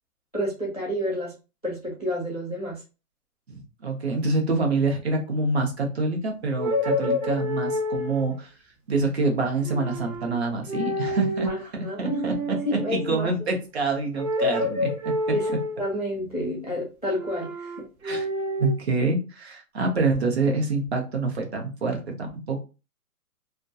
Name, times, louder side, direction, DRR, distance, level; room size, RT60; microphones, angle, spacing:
voice 1, 0.3-1.3 1.6-2.8 11.4-12.2 12.7-13.4 15.3-15.5 15.8-17.7, left 1 dB, 30° left, -3 dB, 0.4 m, -29 dB
voice 2, 3.5-8.5 8.9-15.1 18.0-18.2 18.6-22.6, right 3 dB, 45° right, 2 dB, 0.7 m, -26 dB
sound 1, 6.5-8.3 9.6-10.4 10.7-11.6 12.0-13.2 14.1-16.0 17.1-18.7, left 1 dB, 70° right, 0.9 m, -28 dB
2.3 x 2.2 x 2.6 m, 0.31 s
hypercardioid pair, 170°, 46 cm